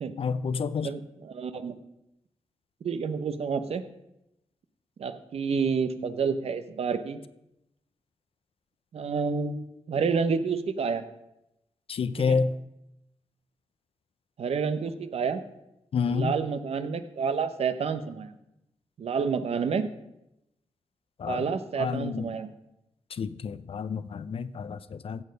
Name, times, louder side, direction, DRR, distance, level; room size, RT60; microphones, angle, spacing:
voice 1, 0.2-1.0 11.9-12.5 15.9-16.3 21.2-21.4 21.8-22.3 23.1-25.2, left 5 dB, 60° left, 0.6 m, -29 dB
voice 2, 0.8-1.7 2.8-3.8 5.0-7.2 8.9-11.0 12.2-12.4 14.4-15.4 16.1-18.4 19.0-19.9 21.3-22.5, right 5 dB, 70° right, 0.9 m, -29 dB
15.5 x 6.8 x 5.3 m
cardioid pair, 90°, 11 cm